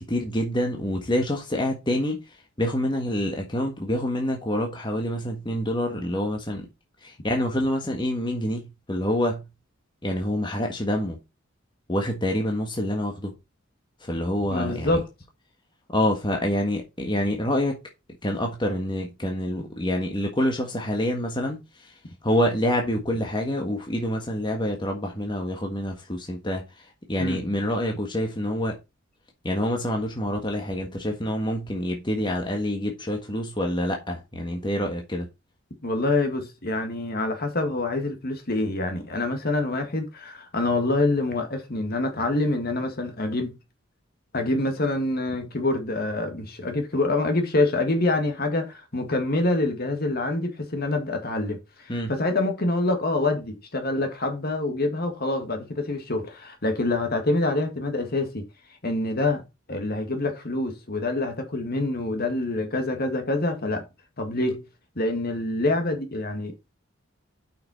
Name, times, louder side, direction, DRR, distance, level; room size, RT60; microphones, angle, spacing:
voice 1, 0.0-2.2 2.6-6.7 7.0-9.4 10.0-11.2 11.9-13.3 14.0-15.0 15.9-17.8 18.2-21.9 22.2-26.6 27.1-28.8 29.4-35.3 51.9-52.1, left 1 dB, 25° left, 1.5 m, -27 dB
voice 2, 14.5-15.1 27.2-27.4 35.8-43.6 44.3-58.4 58.8-59.4 59.7-63.8 64.2-64.6 65.0-66.5, left 2 dB, 50° left, 2.0 m, -26 dB
8.5 x 5.9 x 4.3 m
head